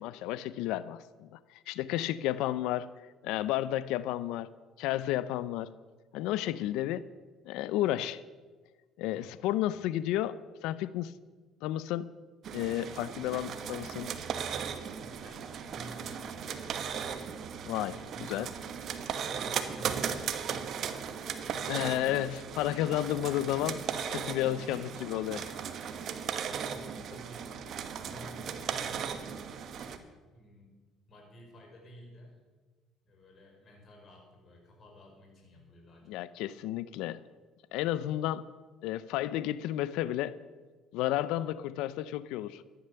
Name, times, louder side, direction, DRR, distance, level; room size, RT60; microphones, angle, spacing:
voice 1, 0.0-2.9 3.2-4.5 4.8-5.7 6.1-7.1 7.4-8.2 9.0-11.2 11.6-12.1 12.5-14.1 17.6-18.5 21.7-25.4 36.1-37.2 37.7-38.5 38.8-40.4 40.9-42.6, left 13 dB, 85° left, 17 dB, 0.5 m, -32 dB
voice 2, 9.1-9.5 15.0-17.1 17.8-21.0 24.7-24.9 26.7-27.7 28.0-30.8 31.1-32.4 33.0-36.2, equal, 40° left, 0 dB, 5.6 m, -52 dB
sound 1, 12.4-30.0, right 7 dB, 55° right, 1.3 m, -37 dB
14.0 x 11.0 x 6.9 m, 1.4 s
cardioid pair, 100°, 0 cm